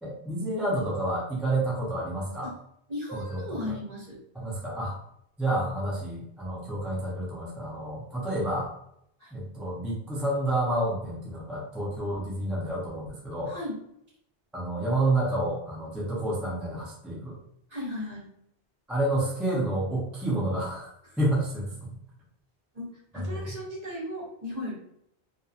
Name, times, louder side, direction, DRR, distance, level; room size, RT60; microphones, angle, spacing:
voice 1, 0.0-2.5 3.1-3.7 4.4-4.9 5.4-8.7 9.3-13.5 14.5-17.4 18.9-20.9 21.2-21.9 23.1-23.5, right 1 dB, ahead, -5 dB, 0.4 m, -29 dB
voice 2, 2.9-4.2 9.2-9.3 13.5-13.8 17.7-18.3 21.0-21.2 22.7-24.7, left 1 dB, 40° right, -5 dB, 0.9 m, -36 dB
2.8 x 2.2 x 2.4 m, 0.73 s
omnidirectional pair, 1.1 m